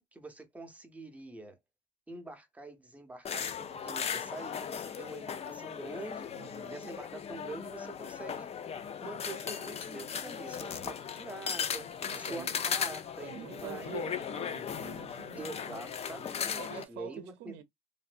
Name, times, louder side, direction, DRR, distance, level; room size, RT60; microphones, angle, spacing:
voice 1, 0.0-1.6 2.1-6.3 6.7-8.5 9.0-11.9 12.1-13.9 15.4-17.6, right 2 dB, 10° right, 0.8 m, -45 dB
sound 1, 3.2-16.8, left 7 dB, 40° left, 0.5 m, -37 dB
voice 2, 6.3-6.9 12.1-12.6 13.2-15.8 16.6-17.6, right 11 dB, 80° right, 0.5 m, -46 dB
3.1 x 2.6 x 2.4 m
cardioid pair, 110°, 17 cm